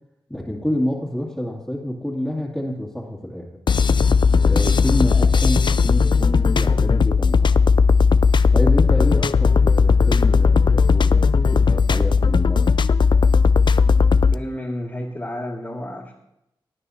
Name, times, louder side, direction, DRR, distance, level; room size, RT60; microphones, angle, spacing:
voice 1, 0.3-3.5 4.4-7.6 8.5-12.7, equal, 5° left, -7 dB, 2.3 m, -28 dB
sound 1, 3.7-14.4, left 5 dB, 60° left, 0.4 m, -16 dB
voice 2, 14.3-16.1, left 1 dB, 25° left, -6 dB, 2.6 m, -31 dB
19.0 x 9.8 x 2.8 m, 0.81 s
cardioid pair, 60°, 9 cm